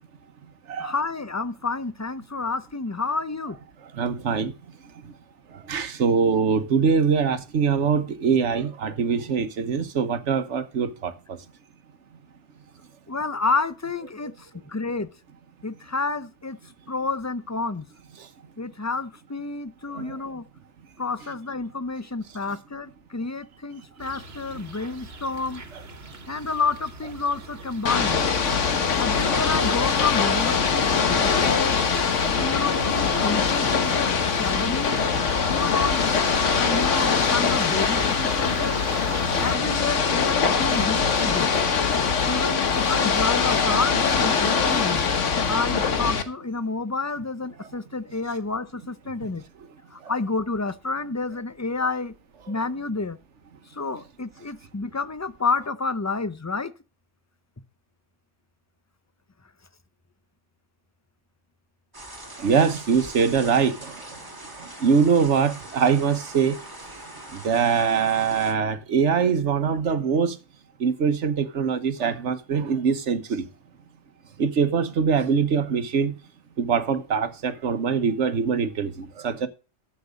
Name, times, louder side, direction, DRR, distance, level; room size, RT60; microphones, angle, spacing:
voice 1, 0.8-3.6 13.1-15.1 15.6-16.6 16.9-17.9 18.6-20.4 21.0-25.6 26.3-28.2 29.0-31.8 32.4-35.0 35.5-36.1 36.5-38.8 39.4-41.5 42.3-45.0 45.5-49.4 49.9-52.1 52.5-53.2 53.7-56.7, left 3 dB, 20° left, 0.6 m, -29 dB
voice 2, 3.9-4.5 5.0-5.1 5.5-11.4 18.2-18.3 19.9-20.2 32.2-32.3 37.9-38.0 41.6-42.0 45.1-45.2 50.0-50.1 62.4-64.2 64.6-66.6 67.3-70.4 70.8-73.5 74.4-76.1 76.6-79.5, right 6 dB, 75° right, 1.4 m, -23 dB
sound 1, 24.0-39.6, right 3 dB, 60° right, 1.7 m, -39 dB
Ocean / Boat Water vehicle, 27.9-46.2, left 6 dB, 85° left, 1.5 m, -23 dB
sound 2, 61.9-68.5, right 1 dB, 20° right, 2.0 m, -41 dB
12.0 x 7.5 x 5.1 m
omnidirectional pair, 1.2 m